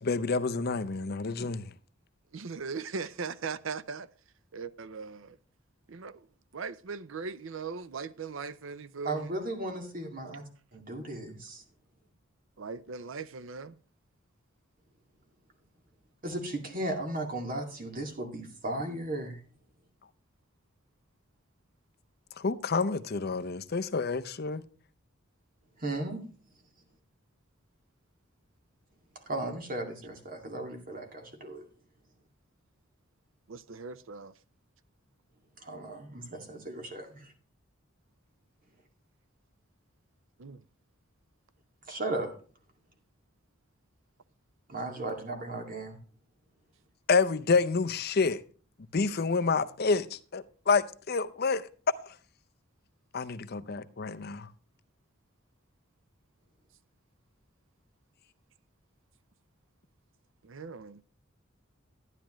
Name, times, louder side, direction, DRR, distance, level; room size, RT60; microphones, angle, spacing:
voice 1, 0.0-1.7 22.4-24.6 47.1-48.4 48.9-51.7 52.0-52.2 53.1-54.5, left 4 dB, 50° left, 0.6 m, -28 dB
voice 2, 2.3-4.1 4.5-5.4 5.9-6.3 6.5-9.3 12.6-13.8 33.5-34.3 40.4-40.6 60.4-61.0, right 5 dB, 75° right, 0.6 m, -39 dB
voice 3, 9.0-10.4 10.7-11.6 16.2-19.4 25.8-26.2 29.3-31.7 35.6-37.3 41.9-42.3 44.7-46.0, right 2 dB, 45° right, 2.2 m, -36 dB
12.5 x 10.0 x 3.1 m
head